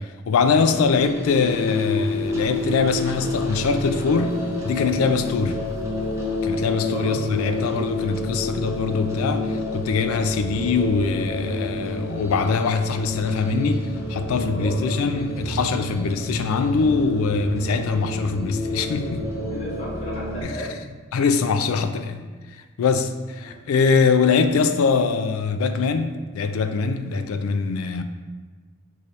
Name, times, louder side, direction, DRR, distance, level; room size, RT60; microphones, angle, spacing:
voice 1, 0.0-5.6 6.4-19.3 20.4-20.5 21.1-22.2 22.8-28.0, left 5 dB, 75° left, 0.3 m, -23 dB
sound 1, 0.6-20.4, left 2 dB, 15° right, 0.5 m, -29 dB
voice 2, 6.8-7.2 14.5-15.0 19.5-20.8 23.4-23.6, left 1 dB, 30° left, 1.1 m, -34 dB
5.3 x 3.1 x 2.7 m
head